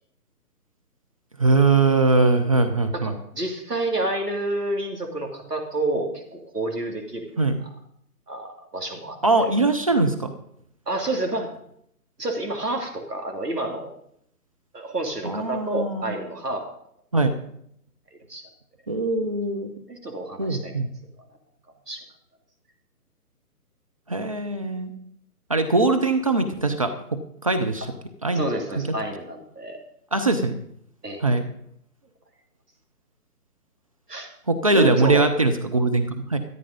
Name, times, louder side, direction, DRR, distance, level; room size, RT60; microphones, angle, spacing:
voice 1, 1.4-3.1 7.4-7.6 9.2-10.3 15.2-16.0 17.1-17.3 18.9-19.7 20.4-20.9 24.1-24.9 25.5-26.9 27.4-27.9 28.2-28.4 30.1-30.5 31.2-31.4 34.5-36.4, right 3 dB, 25° right, 5 dB, 0.5 m, -21 dB
voice 2, 2.9-7.5 8.3-9.5 10.9-11.5 12.2-13.9 14.7-16.6 18.3-18.4 19.9-20.7 21.9-22.0 28.3-29.8 31.0-31.2 34.1-34.3 34.7-35.2, right 2 dB, 90° right, 3 dB, 3.0 m, -29 dB
13.5 x 9.9 x 5.3 m, 0.72 s
figure-of-eight pair, 140°, 46 cm